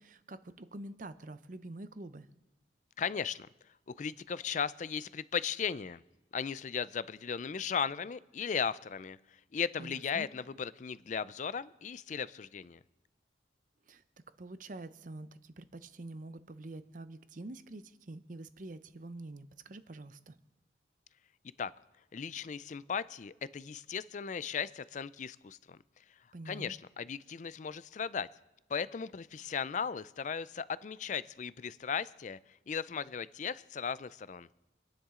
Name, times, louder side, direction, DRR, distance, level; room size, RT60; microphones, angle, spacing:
voice 1, 0.0-2.3 9.8-10.3 13.9-14.0 14.4-20.4 26.3-26.7, right 2 dB, 45° right, 12 dB, 0.7 m, -46 dB
voice 2, 3.0-3.5 4.0-6.0 6.3-9.2 9.5-12.8 21.6-21.7 22.1-25.8 26.5-28.3 28.7-32.4 32.7-34.5, left 6 dB, 40° left, 18 dB, 0.4 m, -36 dB
26.5 x 10.0 x 3.7 m, 1.0 s
head